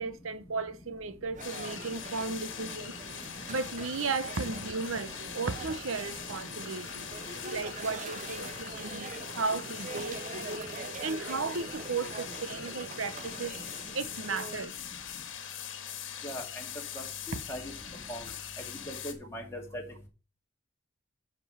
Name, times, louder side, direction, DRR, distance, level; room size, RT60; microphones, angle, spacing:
voice 1, 0.0-3.0 3.5-7.1 7.5-10.7 11.0-13.5 13.9-14.7, right 4 dB, 75° right, 0.8 m, -35 dB
sound 1, 1.3-14.7, right 4 dB, 35° right, 0.6 m, -44 dB
sound 2, 1.4-19.1, left 9 dB, 60° left, 1.6 m, -42 dB
voice 2, 18.9-19.8, equal, 10° left, 2.3 m, -39 dB
10.0 x 5.3 x 5.7 m
head